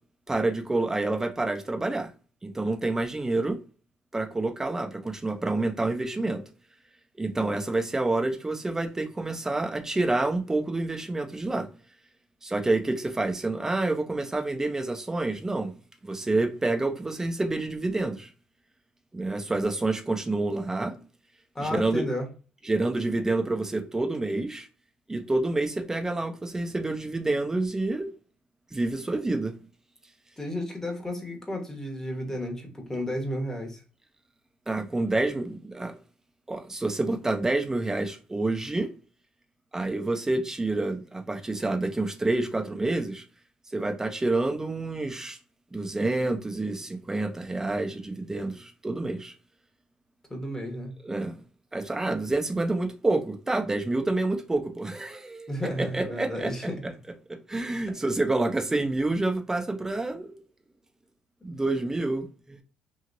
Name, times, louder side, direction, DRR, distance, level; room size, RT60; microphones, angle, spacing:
voice 1, 0.3-2.1 2.4-3.6 4.1-6.4 7.2-11.7 12.4-15.7 16.0-18.3 19.1-20.9 21.6-22.1 22.6-24.7 25.1-28.1 28.7-29.5 34.7-35.9 36.5-38.9 39.7-43.2 43.7-45.4 45.7-49.3 51.0-51.4 51.7-55.5 55.8-56.5 57.5-60.4 61.4-62.6, right 2 dB, 15° right, 0.6 m, -28 dB
voice 2, 21.5-22.3 30.4-33.8 50.3-50.9 55.5-56.8, equal, 15° left, 1.2 m, -32 dB
2.9 x 2.7 x 2.5 m
cardioid pair, 85°, 3 cm